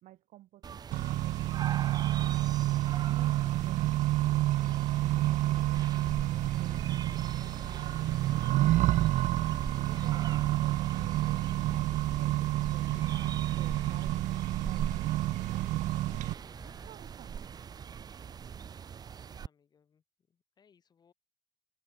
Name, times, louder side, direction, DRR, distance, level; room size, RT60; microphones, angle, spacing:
voice 1, 0.0-2.6 3.0-8.0 8.4-9.1 9.9-14.3 14.7-16.1 16.6-17.5, right 15 dB, 85° right, 2.6 m, -53 dB
sound 1, 0.6-19.5, right 7 dB, 30° right, 1.0 m, -43 dB
Accelerating revving vroom, 0.9-16.3, right 15 dB, 70° right, 0.5 m, -29 dB
sound 2, 4.5-16.9, right 2 dB, 5° right, 1.1 m, -50 dB
voice 2, 19.3-21.1, left 7 dB, 30° left, 7.9 m, -68 dB
open air
cardioid pair, 175°, 13 cm